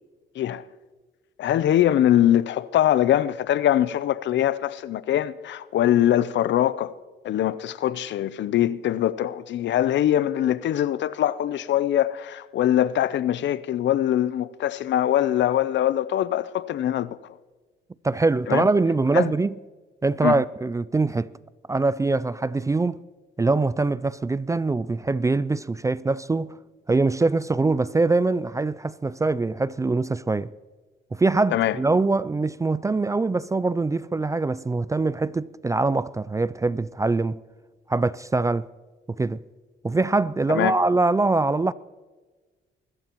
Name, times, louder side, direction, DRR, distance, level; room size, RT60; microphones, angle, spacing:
voice 1, 1.4-6.9 7.2-17.4 18.5-18.7 19.1-19.3 20.2-20.4 31.5-31.8 40.5-40.7, left 12 dB, 65° left, 0.6 m, -22 dB
voice 2, 18.0-19.6 20.0-21.3 21.7-23.0 23.4-26.6 26.9-30.5 31.1-37.4 37.9-38.7 39.1-39.4 39.8-41.7, right 3 dB, 15° right, 0.3 m, -23 dB
24.5 x 14.0 x 3.0 m
cardioid pair, 90°, 20 cm